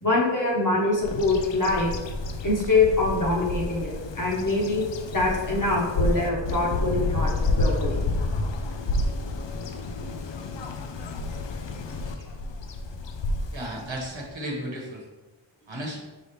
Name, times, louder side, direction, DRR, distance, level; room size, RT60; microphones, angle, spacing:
voice 1, 0.0-1.9 2.4-4.8 5.1-8.0, left 2 dB, 40° left, -3 dB, 1.2 m, -24 dB
Bird vocalization bird call bird song, 1.0-14.3, left 2 dB, 65° left, 0.5 m, -30 dB
voice 2, 13.5-15.0 15.7-16.0, right 1 dB, 65° right, -1 dB, 1.1 m, -34 dB
4.9 x 2.8 x 3.2 m, 1.2 s
wide cardioid pair, 45°, 49 cm